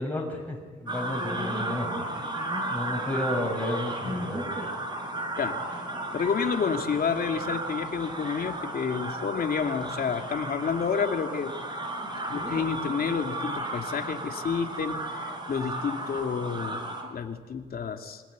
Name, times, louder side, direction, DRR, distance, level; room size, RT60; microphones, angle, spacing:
voice 1, 0.0-1.9 2.7-4.5, left 1 dB, 10° left, -1 dB, 6.7 m, -32 dB
sound 1, 0.9-17.0, right 1 dB, 20° right, 7.1 m, -34 dB
voice 2, 5.4-5.8 6.1-11.5 12.3-18.2, left 6 dB, 50° left, 4 dB, 2.8 m, -30 dB
25.5 x 20.5 x 9.7 m, 1.5 s
cardioid pair, 90°, 20 cm